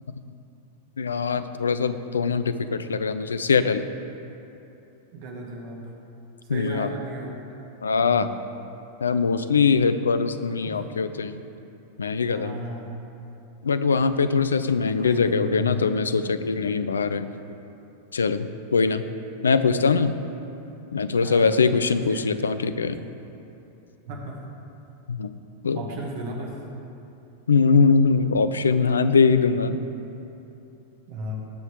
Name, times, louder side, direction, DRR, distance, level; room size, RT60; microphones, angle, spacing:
voice 1, 1.0-3.8 6.5-6.9 7.8-8.3 9.0-11.4 12.0-12.6 13.6-17.3 18.1-19.0 19.4-20.1 20.9-23.0 25.1-25.3 25.6-25.8 27.5-29.8, left 5 dB, 70° left, 11 dB, 0.5 m, -22 dB
voice 2, 5.1-5.8 6.4-7.3 8.0-8.3 10.6-10.9 12.3-12.9 15.0-16.0 21.2-21.6 22.1-22.8 24.1-24.4 25.7-26.5 29.4-29.7 31.1-31.4, right 1 dB, 50° right, -1 dB, 2.1 m, -35 dB
19.0 x 6.4 x 3.7 m, 2.9 s
figure-of-eight pair, 90°, 0 cm